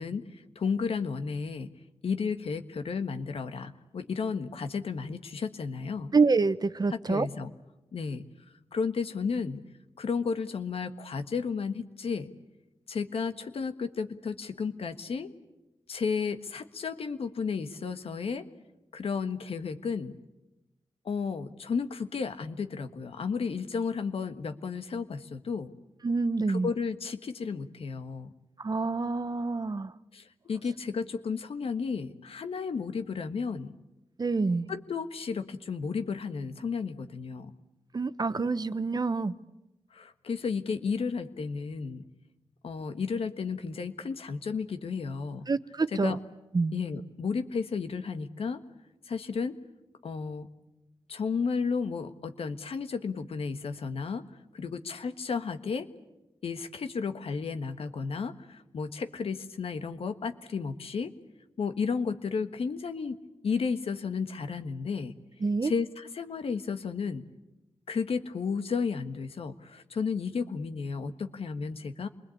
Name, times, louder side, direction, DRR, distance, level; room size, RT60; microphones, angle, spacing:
voice 1, 0.0-1.7 2.0-6.1 6.9-7.5 7.9-8.2 8.7-9.6 10.0-12.3 12.9-15.3 15.9-18.5 18.9-20.1 21.0-25.7 26.5-28.3 30.1-33.7 34.7-37.5 39.9-42.0 42.6-45.4 45.9-46.2 46.7-48.6 49.1-49.6 50.0-50.5 51.1-54.2 54.5-55.9 56.4-61.1 61.6-63.2 63.4-65.1 65.6-67.2 67.9-72.1, left 5 dB, 80° left, 8 dB, 1.5 m, -33 dB
voice 2, 6.1-7.3 26.0-26.7 28.6-29.9 34.2-34.7 37.9-39.3 45.5-46.2 46.5-46.7 65.4-65.7, right 4 dB, 40° right, 13 dB, 0.9 m, -27 dB
26.5 x 21.0 x 8.5 m, 0.99 s
cardioid pair, 65°, 10 cm